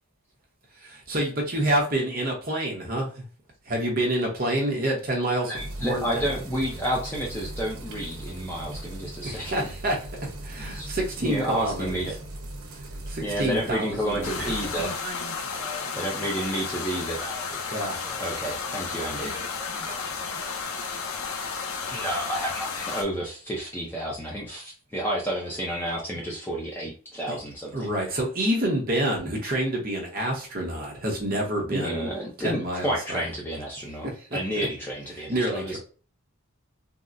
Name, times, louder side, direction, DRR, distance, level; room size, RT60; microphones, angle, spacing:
voice 1, 1.1-3.0 3.7-5.5 5.8-6.0 9.5-9.9 10.5-12.0 13.4-14.4 17.7-17.9 27.7-32.1 32.4-33.2 35.3-35.8, right 1 dB, 40° right, -1 dB, 0.8 m, -27 dB
voice 2, 5.4-9.7 10.7-10.9 11.2-12.1 13.2-14.9 16.0-17.2 18.2-19.3 21.9-27.9 31.7-34.1 34.3-35.8, right 1 dB, 10° left, -3 dB, 0.5 m, -30 dB
sound 1, 5.5-14.8, right 1 dB, 80° right, 0.7 m, -39 dB
sound 2, 14.2-23.0, left 5 dB, 80° left, 0.6 m, -33 dB
voice 3, 14.4-16.4 17.1-17.5 17.9-20.9, right 1 dB, 5° right, -5 dB, 1.1 m, -43 dB
3.8 x 2.0 x 2.5 m, 0.38 s
head